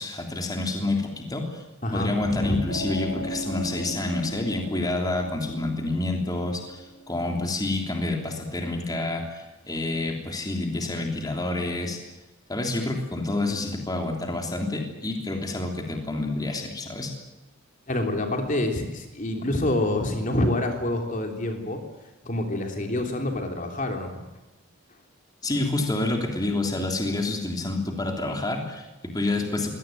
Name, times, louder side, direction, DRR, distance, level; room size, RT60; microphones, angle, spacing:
voice 1, 0.0-1.6 1.9-12.0 12.5-17.1 25.4-29.7, left 2 dB, 15° left, 3 dB, 3.2 m, -28 dB
voice 2, 1.8-2.6 17.9-21.8 22.2-24.1, left 1 dB, 35° left, 3 dB, 3.2 m, -27 dB
sound 1, 2.7-7.9, right 1 dB, 75° left, 4.4 m, -37 dB
24.0 x 18.0 x 9.2 m, 1.1 s
head